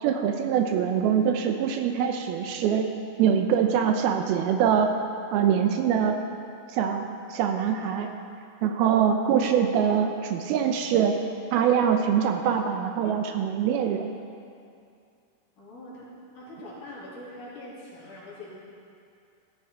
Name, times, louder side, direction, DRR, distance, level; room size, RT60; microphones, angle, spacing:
voice 1, 0.0-2.9 3.2-5.0 5.3-6.2 6.7-8.1 8.6-11.2 11.5-14.1, right 8 dB, 80° right, 5 dB, 2.5 m, -24 dB
voice 2, 15.6-16.1 16.3-18.6, left 1 dB, 55° left, -8 dB, 4.6 m, -43 dB
15.5 x 13.0 x 4.4 m, 2.4 s
omnidirectional pair, 4.6 m